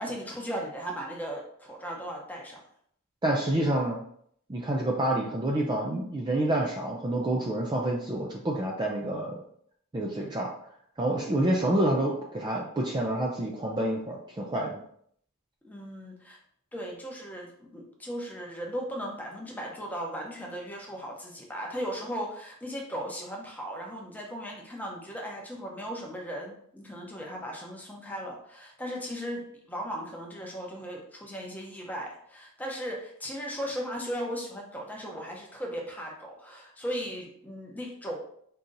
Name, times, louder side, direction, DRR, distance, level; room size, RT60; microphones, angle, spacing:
voice 1, 0.0-2.6 15.6-16.4 16.7-29.4 29.7-38.2, equal, 5° left, -1 dB, 0.8 m, -37 dB
voice 2, 3.2-4.0 4.5-9.4 9.9-10.5 11.0-14.8, right 1 dB, 20° right, -1 dB, 0.4 m, -28 dB
3.8 x 2.8 x 3.9 m, 0.66 s
head